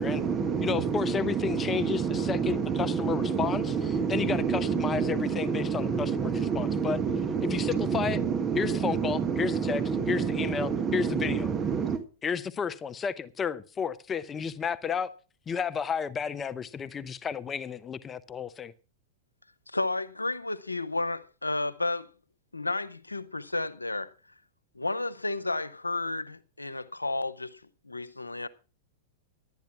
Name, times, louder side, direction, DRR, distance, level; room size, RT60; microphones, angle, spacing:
voice 1, 0.0-12.0, right 6 dB, 25° right, 1.3 m, -28 dB
voice 2, 0.6-7.0 7.5-8.2 8.6-9.8 10.1-11.5 12.2-15.1 15.5-18.7, left 6 dB, 20° left, 0.7 m, -32 dB
voice 3, 19.7-22.1 22.5-24.1 24.7-27.6 27.8-28.5, left 2 dB, 90° left, 0.8 m, -32 dB
12.0 x 9.3 x 5.8 m
figure-of-eight pair, 100°, 0 cm